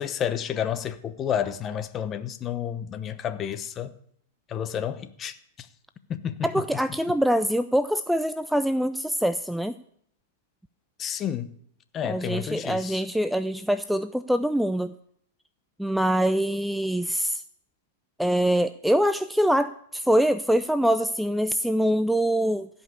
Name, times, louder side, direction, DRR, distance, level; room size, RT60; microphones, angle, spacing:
voice 1, 0.0-3.9 4.5-5.7 6.1-6.5 11.0-11.5 11.9-13.0, left 9 dB, 30° left, 1.0 m, -30 dB
voice 2, 6.4-9.8 12.0-14.9 15.8-17.4 18.2-22.7, equal, ahead, 0.4 m, -24 dB
16.0 x 5.5 x 8.4 m
hypercardioid pair, 105°, 0 cm